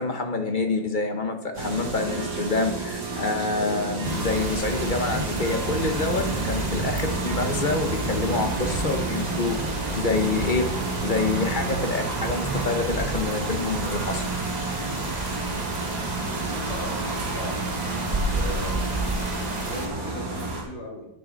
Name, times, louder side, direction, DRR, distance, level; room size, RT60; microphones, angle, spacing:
voice 1, 0.0-10.7 11.0-14.2, left 3 dB, 30° left, 5 dB, 1.1 m, -27 dB
sound 1, 1.5-20.6, right 3 dB, 70° right, 3.4 m, -31 dB
sound 2, 4.0-19.9, right 2 dB, 25° right, 1.2 m, -31 dB
voice 2, 16.6-17.0 17.3-17.7 18.0-19.0 19.6-21.1, left 1 dB, 75° left, -3 dB, 4.0 m, -37 dB
10.0 x 9.5 x 4.1 m, 0.77 s
omnidirectional pair, 2.1 m